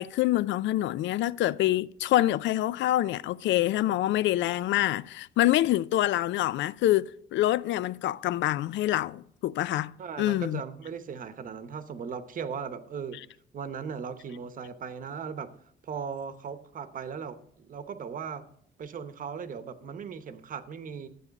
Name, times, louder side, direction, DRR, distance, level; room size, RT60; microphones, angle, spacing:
voice 1, 0.0-10.6, left 14 dB, 85° left, 0.4 m, -26 dB
voice 2, 10.0-13.2 13.5-15.5 15.8-18.5 18.8-21.1, right 6 dB, 45° right, 0.9 m, -38 dB
12.0 x 8.4 x 4.1 m
cardioid pair, 165°, 19 cm